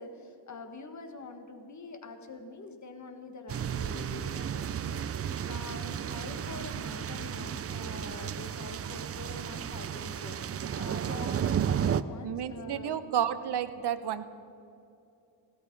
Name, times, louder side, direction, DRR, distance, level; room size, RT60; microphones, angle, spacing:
voice 1, 0.0-13.0, left 3 dB, 40° left, 6 dB, 1.5 m, -45 dB
sound 1, 3.5-12.0, right 9 dB, 35° right, 0.4 m, -33 dB
voice 2, 12.2-14.3, right 9 dB, 60° right, 12 dB, 0.8 m, -31 dB
17.0 x 13.0 x 5.2 m, 2.7 s
cardioid pair, 110°, 44 cm